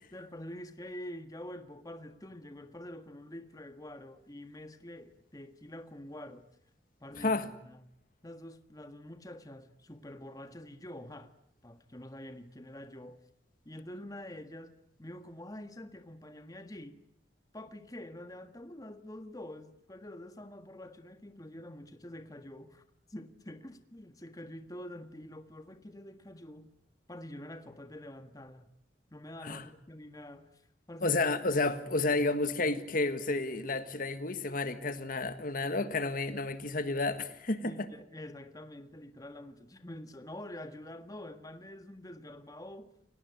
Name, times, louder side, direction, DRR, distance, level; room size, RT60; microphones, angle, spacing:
voice 1, 0.1-6.5 7.0-7.8 8.2-11.3 11.6-13.2 13.6-17.0 17.5-22.8 23.1-26.7 27.1-28.7 29.1-30.5 30.9-31.2 37.6-42.9, left 1 dB, 20° left, 1.6 m, -46 dB
voice 2, 7.1-7.5 29.4-29.7 31.0-37.9, left 3 dB, 50° left, 1.6 m, -31 dB
30.0 x 18.5 x 9.6 m
head